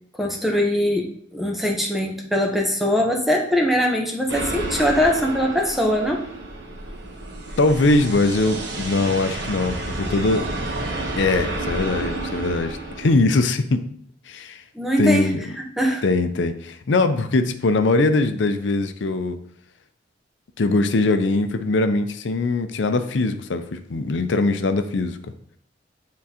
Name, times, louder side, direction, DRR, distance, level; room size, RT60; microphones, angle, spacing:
voice 1, 0.2-6.2 14.7-16.0, equal, ahead, 0 dB, 0.8 m, -22 dB
sound 1, 4.3-13.1, right 2 dB, 70° right, 1.0 m, -30 dB
voice 2, 7.6-10.4 11.2-13.8 14.3-14.6 15.0-15.4 16.0-19.4 20.6-25.2, left 2 dB, 90° left, 8 dB, 0.5 m, -21 dB
9.3 x 3.8 x 2.8 m, 0.63 s
head